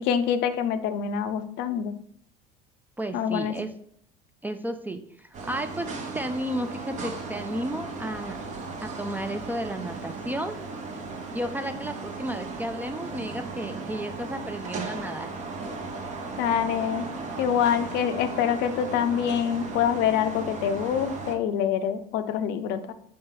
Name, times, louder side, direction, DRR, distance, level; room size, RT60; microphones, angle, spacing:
voice 1, 0.0-2.0 3.1-3.5 16.4-17.1 17.4-22.9, left 8 dB, 65° left, 10 dB, 0.5 m, -25 dB
voice 2, 3.0-3.7 4.4-8.4 8.8-10.6 11.3-15.4, right 1 dB, 10° right, 8 dB, 0.3 m, -33 dB
sound 1, 5.3-21.4, right 3 dB, 40° right, 0.8 m, -36 dB
4.2 x 2.8 x 3.8 m, 0.66 s
supercardioid pair, 90°, 19 cm